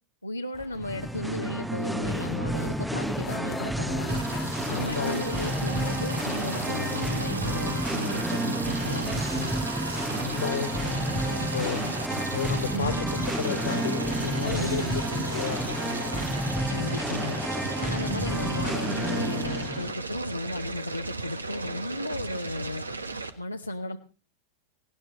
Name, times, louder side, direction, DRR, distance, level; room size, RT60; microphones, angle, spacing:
voice 1, 0.2-4.2 4.7-9.5 11.5-12.0 12.6-13.3 14.5-15.0 16.7-17.4 17.8-22.8 23.4-24.0, left 2 dB, 85° left, 2 dB, 0.9 m, -35 dB
sound 1, 0.5-7.5, left 10 dB, 30° left, 1.5 m, -45 dB
Singing, 0.7-19.9, right 1 dB, 5° right, 0.7 m, -30 dB
sound 2, 4.1-23.3, right 3 dB, 80° right, 1.3 m, -35 dB
voice 2, 4.6-5.7 10.2-11.8 12.3-16.3, left 7 dB, 65° left, 12 dB, 1.8 m, -33 dB
19.0 x 18.0 x 3.1 m, 0.34 s
figure-of-eight pair, 90°, 0 cm